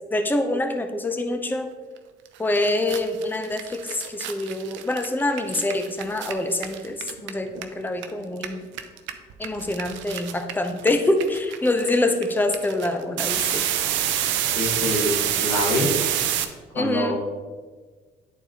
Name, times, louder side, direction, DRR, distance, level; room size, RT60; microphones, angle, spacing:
voice 1, 0.1-1.7 2.4-8.6 9.4-13.6 16.7-17.1, left 2 dB, 10° left, 5 dB, 0.8 m, -25 dB
sound 1, 2.3-2.4 2.5-8.0 8.3-16.4, right 11 dB, 80° right, 0.6 m, -27 dB
voice 2, 14.5-15.1 15.3-15.9 16.7-17.1, left 1 dB, 90° left, -3 dB, 1.6 m, -25 dB
10.0 x 4.4 x 3.0 m, 1.4 s
supercardioid pair, 65°, 19 cm